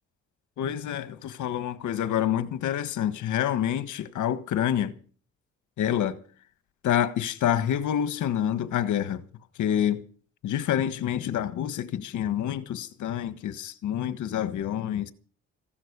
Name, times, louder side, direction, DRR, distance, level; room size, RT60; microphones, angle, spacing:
voice 1, 0.6-4.9 5.8-6.2 6.8-9.2 9.6-10.0 10.4-15.1, left 10 dB, 75° left, 1.4 m, -27 dB
15.5 x 12.0 x 6.8 m
cardioid pair, 90°, 30 cm